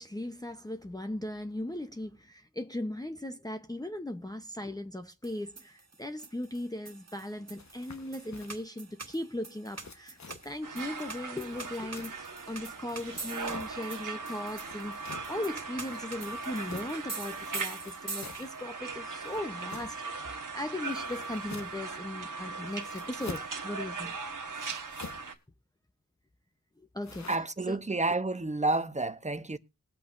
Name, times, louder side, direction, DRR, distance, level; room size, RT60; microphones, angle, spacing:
voice 1, 0.0-24.2 26.8-27.3 27.7-27.8, left 1 dB, 10° left, 0.8 m, -38 dB
sound 1, 5.2-18.8, right 3 dB, 55° right, 1.8 m, -45 dB
sound 2, 7.6-8.7 9.7-10.6 11.4-12.4 13.0-13.8 14.5-15.4 16.2-17.0 17.7-18.5 19.2-20.1 20.8-21.9 22.7-23.6 24.5-25.3 27.0-27.4, left 4 dB, 60° left, 1.1 m, -48 dB
sound 3, 10.6-25.3, right 4 dB, 85° right, 1.2 m, -39 dB
voice 2, 27.3-29.6, right 2 dB, 25° right, 0.8 m, -30 dB
20.5 x 8.4 x 2.6 m
cardioid pair, 45°, 31 cm